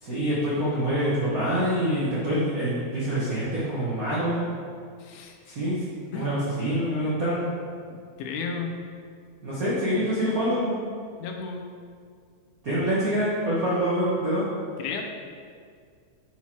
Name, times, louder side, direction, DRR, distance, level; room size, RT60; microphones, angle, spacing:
voice 1, 0.0-4.5 5.5-5.8 6.1-7.4 9.4-10.8 12.6-14.5, equal, 80° right, -9 dB, 0.7 m, -26 dB
voice 2, 5.0-5.6 6.1-6.4 7.1-7.2 8.2-8.8 11.2-11.7 14.8-15.0, left 5 dB, 90° left, 3 dB, 2.2 m, -33 dB
5.7 x 4.5 x 4.4 m, 2.1 s
omnidirectional pair, 3.5 m